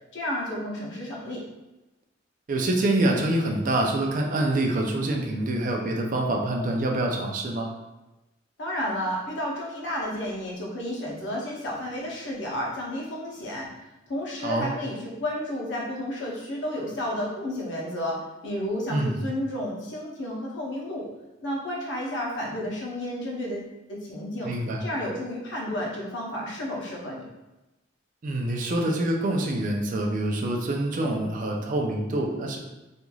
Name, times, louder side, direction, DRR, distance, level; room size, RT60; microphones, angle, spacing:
voice 1, 0.1-1.4 8.6-13.7 14.1-21.0 21.4-24.5 24.8-27.2, left 1 dB, 70° left, -3 dB, 0.8 m, -31 dB
voice 2, 2.5-7.7 14.4-14.7 18.9-19.1 24.4-24.8 28.2-32.6, right 1 dB, 45° right, 1 dB, 0.4 m, -26 dB
3.0 x 2.5 x 2.3 m, 1.0 s
head